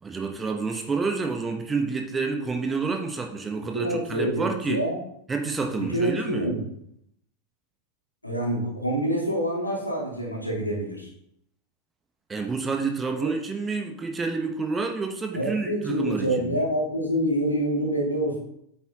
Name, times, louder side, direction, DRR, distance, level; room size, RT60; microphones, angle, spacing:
voice 1, 0.0-4.8 5.3-6.5 12.3-16.6, right 4 dB, 15° right, 4 dB, 1.1 m, -29 dB
voice 2, 3.7-5.0 5.8-6.7 8.2-11.1 13.2-13.3 15.3-18.4, right 1 dB, 85° left, -2 dB, 2.3 m, -26 dB
8.8 x 7.2 x 2.9 m, 0.74 s
figure-of-eight pair, 90°, 0 cm